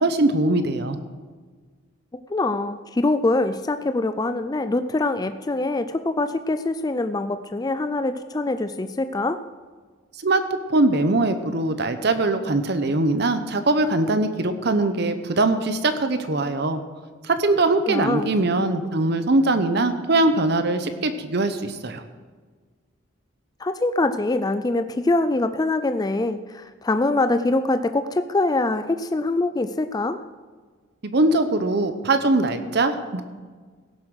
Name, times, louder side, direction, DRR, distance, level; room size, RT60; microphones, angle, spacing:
voice 1, 0.0-1.0 10.2-16.8 17.2-22.0 31.0-33.2, right 2 dB, 55° right, 9 dB, 0.8 m, -21 dB
voice 2, 2.3-9.4 17.9-18.3 23.6-30.2, left 2 dB, 20° left, 10 dB, 0.3 m, -24 dB
16.5 x 7.2 x 6.3 m, 1.5 s
head